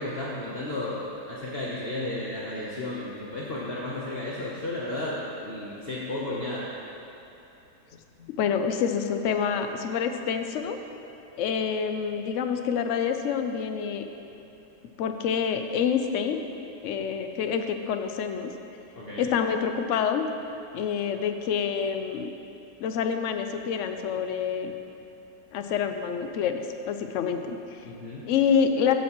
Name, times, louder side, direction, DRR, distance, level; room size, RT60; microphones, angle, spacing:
voice 1, 0.0-6.7 19.0-19.3 27.8-28.2, left 1 dB, 45° left, -6 dB, 1.0 m, -33 dB
voice 2, 8.4-10.8 11.4-14.0 15.0-16.4 16.8-18.5 19.2-20.3 20.7-22.3 22.8-24.7 25.5-27.9 28.3-28.9, left 7 dB, 65° left, 7 dB, 0.8 m, -27 dB
14.5 x 7.2 x 3.0 m, 2.8 s
omnidirectional pair, 1.7 m